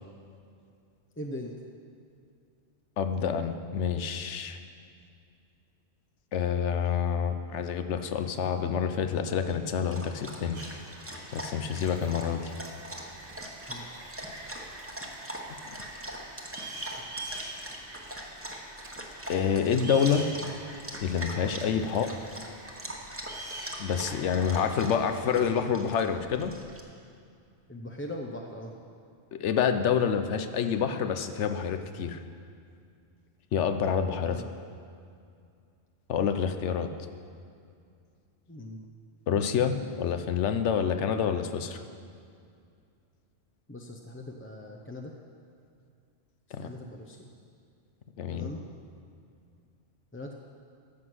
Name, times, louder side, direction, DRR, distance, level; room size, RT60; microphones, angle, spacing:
voice 1, 1.2-1.5 13.7-14.0 21.8-22.0 27.7-28.7 34.2-34.5 38.5-38.8 43.7-45.1 46.6-47.3 48.3-48.6 50.1-50.3, left 1 dB, 15° left, 1 dB, 0.5 m, -40 dB
voice 2, 3.0-4.6 6.3-10.6 11.3-12.5 19.3-20.3 21.0-22.1 23.8-26.5 29.3-32.2 33.5-34.4 36.1-36.9 39.3-41.8 46.5-46.7 48.2-48.5, left 7 dB, 85° left, 8 dB, 1.0 m, -28 dB
Dog, 9.4-26.8, right 1 dB, 10° right, 1.1 m, -42 dB
sound 1, 10.5-25.3, right 2 dB, 55° right, 1.8 m, -45 dB
13.5 x 7.8 x 6.2 m, 2.4 s
omnidirectional pair, 1.2 m